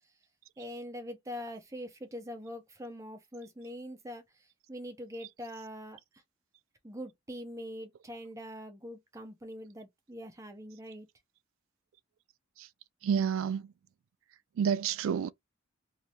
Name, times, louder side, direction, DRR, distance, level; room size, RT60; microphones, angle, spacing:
voice 1, 0.6-6.0 6.8-11.1, equal, 15° right, 0.6 m, -43 dB
voice 2, 13.0-13.7 14.6-15.3, right 7 dB, 80° right, 0.3 m, -29 dB
2.8 x 2.7 x 3.2 m
head